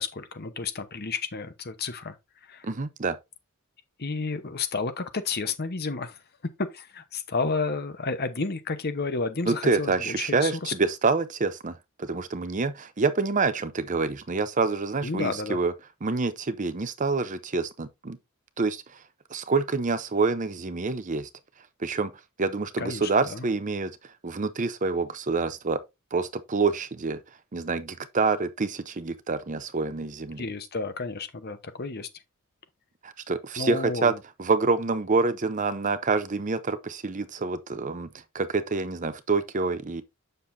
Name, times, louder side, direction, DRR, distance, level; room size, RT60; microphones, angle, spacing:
voice 1, 0.0-2.2 2.4-2.7 4.0-6.2 6.6-10.7 15.0-15.6 22.8-23.5 30.4-32.1 33.6-34.2, left 4 dB, 45° left, 1.0 m, -31 dB
voice 2, 2.6-3.2 9.5-15.7 16.0-18.2 18.6-19.0 19.3-21.3 21.8-22.1 22.4-25.8 26.1-27.2 27.5-30.4 33.0-34.1 34.4-38.1 38.3-40.0, right 4 dB, 35° right, 0.6 m, -27 dB
7.7 x 6.7 x 2.6 m
head